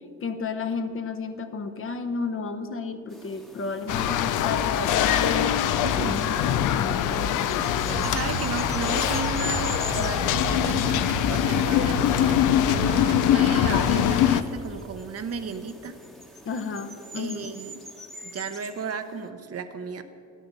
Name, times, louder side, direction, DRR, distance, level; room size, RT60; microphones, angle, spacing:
voice 1, 0.2-8.1 11.8-12.1 16.4-17.5, left 4 dB, 45° left, 7 dB, 0.9 m, -33 dB
sound 1, 3.1-19.3, equal, ahead, 1.1 m, -44 dB
sound 2, 3.9-14.4, left 10 dB, 85° left, 0.6 m, -23 dB
voice 2, 5.8-6.2 8.0-11.9 12.2-12.4 12.6-16.0 17.1-17.8 18.2-20.0, right 5 dB, 50° right, 8 dB, 0.9 m, -34 dB
sound 3, 7.9-14.6, right 9 dB, 75° right, 0.6 m, -36 dB
12.0 x 10.0 x 5.5 m, 2.6 s
cardioid pair, 90°, 30 cm